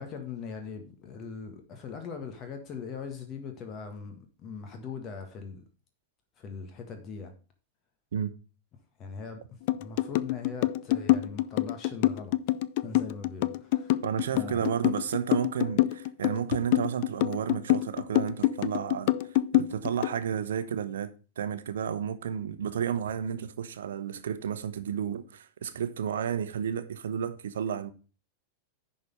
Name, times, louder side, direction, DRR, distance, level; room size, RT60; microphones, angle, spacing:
voice 1, 0.0-5.6 6.4-7.3 9.0-9.4 9.7-12.3 12.8-14.0 14.3-14.7, left 5 dB, 30° left, 1.7 m, -40 dB
sound 1, 9.7-20.2, left 16 dB, 50° left, 0.3 m, -26 dB
voice 2, 14.0-19.1 19.5-21.1 21.4-27.9, right 8 dB, 65° right, 0.8 m, -32 dB
10.5 x 4.3 x 5.2 m
figure-of-eight pair, 90°, 0 cm